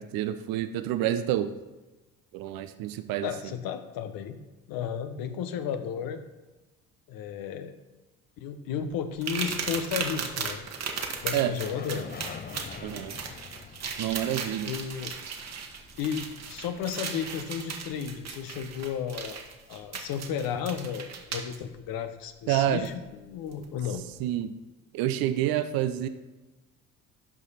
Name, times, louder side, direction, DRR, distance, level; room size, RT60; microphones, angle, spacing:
voice 1, 0.0-1.6 2.3-3.5 11.3-11.5 12.8-13.2 14.0-14.7 22.5-22.9 24.2-24.5 24.9-26.1, right 12 dB, 60° right, 11 dB, 0.7 m, -28 dB
voice 2, 3.2-4.4 4.7-6.2 7.1-7.8 8.4-10.7 11.2-12.1 14.7-15.1 16.0-19.4 19.7-24.0, left 8 dB, 60° left, 8 dB, 1.0 m, -33 dB
sound 1, 9.2-21.6 22.8-22.9 23.5-23.6, right 5 dB, 40° right, 1.5 m, -36 dB
sound 2, 9.8-18.2, left 6 dB, 25° left, 0.6 m, -47 dB
12.0 x 5.0 x 4.2 m, 1.1 s
hypercardioid pair, 65°, 41 cm